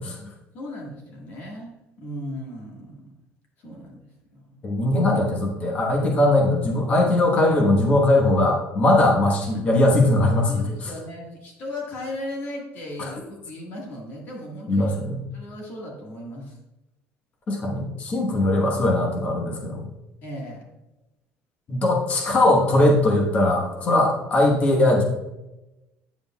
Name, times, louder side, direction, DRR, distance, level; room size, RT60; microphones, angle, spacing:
voice 1, 0.2-3.1 3.6-4.0 4.3-4.5 9.5-9.6 10.5-15.0 15.3-16.6 20.2-20.7, left 1 dB, 45° left, -2 dB, 1.6 m, -36 dB
voice 2, 4.6-10.9 13.0-13.1 14.7-15.2 17.5-19.9 21.7-25.0, left 1 dB, 25° left, 0 dB, 1.1 m, -20 dB
9.1 x 7.7 x 2.3 m, 0.98 s
cardioid pair, 180°, 5 cm